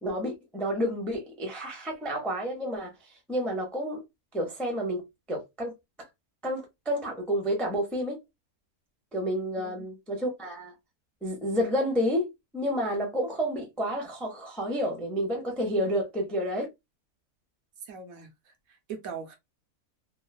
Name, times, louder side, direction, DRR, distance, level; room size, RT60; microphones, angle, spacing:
voice 1, 0.0-4.0 4.3-5.7 6.4-8.2 9.1-10.7 11.2-16.7, equal, ahead, 0.4 m, -30 dB
voice 2, 17.8-19.4, right 6 dB, 75° right, 1.1 m, -41 dB
3.0 x 2.1 x 2.2 m
omnidirectional pair, 1.6 m